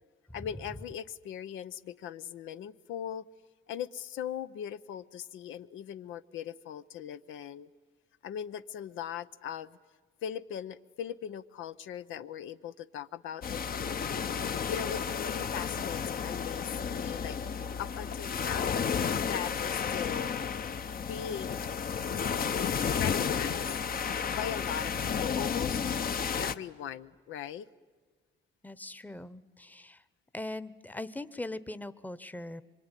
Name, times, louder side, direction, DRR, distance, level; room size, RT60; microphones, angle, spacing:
voice 1, 0.3-3.3 3.7-7.7 8.2-9.8 10.2-13.7 14.7-17.4 17.8-18.8 19.2-20.3 20.9-21.6 23.0-23.7 24.3-25.8 26.4-27.7, left 9 dB, 85° left, 0.7 m, -39 dB
sound 1, 13.4-26.6, left 7 dB, 45° left, 0.9 m, -32 dB
voice 2, 28.6-30.0 30.3-32.6, left 2 dB, 10° left, 0.9 m, -40 dB
24.5 x 23.0 x 9.9 m
cardioid pair, 90°, 20 cm